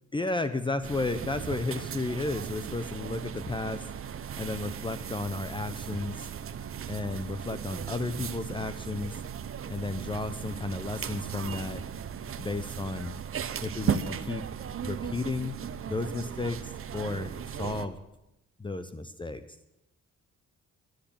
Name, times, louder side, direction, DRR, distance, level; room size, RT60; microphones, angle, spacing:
voice 1, 0.1-3.8 4.4-6.3 6.9-9.2 9.7-11.8 12.4-13.1 13.6-14.4 14.8-15.6 15.9-18.0 18.6-19.4, left 2 dB, 15° left, 11 dB, 0.8 m, -33 dB
sound 1, 0.8-17.9, right 8 dB, 45° right, 0.9 m, -37 dB
11.5 x 10.5 x 8.7 m, 0.89 s
cardioid pair, 90°, 30 cm